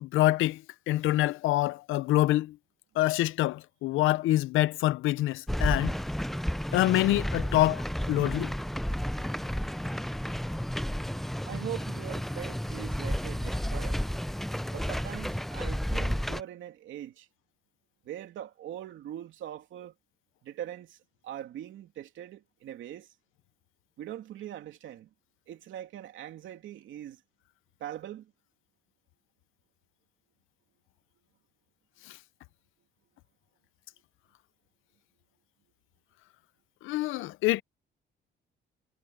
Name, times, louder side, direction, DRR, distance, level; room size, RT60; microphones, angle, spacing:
voice 1, 0.0-0.6 0.9-2.6 3.0-6.0 6.7-7.8 8.1-8.5 32.1-32.2 36.8-37.6, left 16 dB, 90° left, 0.6 m, -26 dB
sound 1, 5.5-16.4, equal, ahead, 0.4 m, -32 dB
voice 2, 11.4-14.0 14.7-17.3 18.0-19.9 20.4-21.0 21.2-23.1 24.0-25.1 25.5-27.2 27.8-28.3, right 11 dB, 80° right, 2.9 m, -41 dB
cardioid pair, 90°, 20 cm